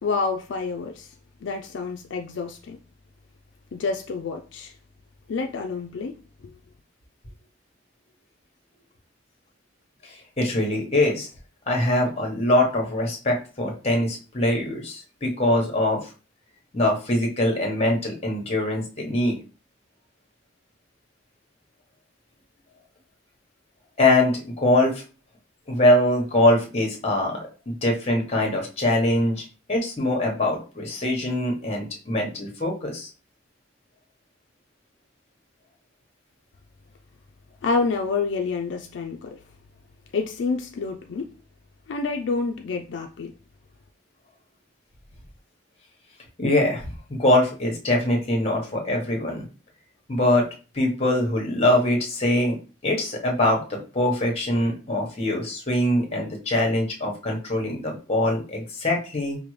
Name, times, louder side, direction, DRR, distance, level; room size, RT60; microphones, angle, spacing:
voice 1, 0.0-1.1 1.4-2.8 3.7-4.7 5.3-6.2 37.6-39.4 40.1-41.3 41.9-43.3, left 4 dB, 75° left, 0.4 m, -28 dB
voice 2, 10.4-11.3 11.7-16.1 16.7-19.4 24.0-25.0 25.7-27.4 27.7-33.1 46.4-49.4 50.1-50.5 50.7-52.6 52.8-59.4, left 1 dB, 35° left, 1.0 m, -23 dB
5.0 x 2.1 x 3.1 m
head